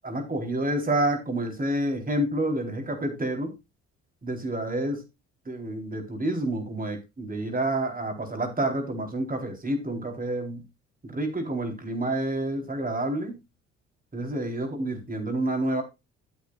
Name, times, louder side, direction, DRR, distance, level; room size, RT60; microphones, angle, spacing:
voice 1, 0.0-3.5 4.2-5.0 5.5-10.6 11.0-13.4 14.1-15.8, right 1 dB, 25° right, 4.4 m, -28 dB
14.0 x 8.3 x 2.6 m
hypercardioid pair, 55°, 33 cm